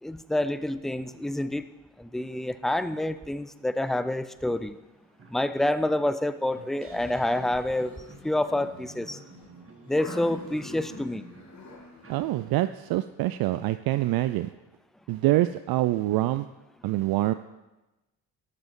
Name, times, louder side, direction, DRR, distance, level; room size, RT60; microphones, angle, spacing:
voice 1, 0.0-1.6 2.0-4.8 5.3-8.0 8.2-9.2 9.9-11.2, left 1 dB, ahead, 13 dB, 0.5 m, -28 dB
sound 1, 4.4-4.5 4.8-12.9, right 4 dB, 25° right, 1.8 m, -51 dB
sound 2, 6.3-12.3, left 2 dB, 35° left, 2.9 m, -46 dB
voice 2, 12.1-14.5 15.1-16.5 16.8-17.3, right 16 dB, 50° right, 12 dB, 0.5 m, -25 dB
12.5 x 11.0 x 3.7 m, 1.1 s
hypercardioid pair, 50°, 48 cm